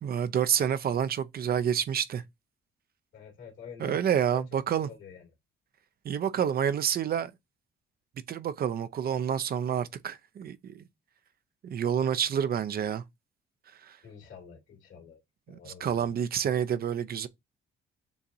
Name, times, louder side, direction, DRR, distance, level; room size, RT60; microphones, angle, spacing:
voice 1, 0.0-2.2 3.8-4.9 6.0-7.3 8.3-10.8 11.6-13.0 13.8-14.0 15.5-17.3, right 8 dB, 50° right, 0.5 m, -28 dB
voice 2, 3.1-4.0 4.3-4.4 4.9-5.2 14.0-15.2 15.5-16.1, left 6 dB, 75° left, 2.3 m, -47 dB
6.9 x 2.5 x 2.6 m
cardioid pair, 90°, 20 cm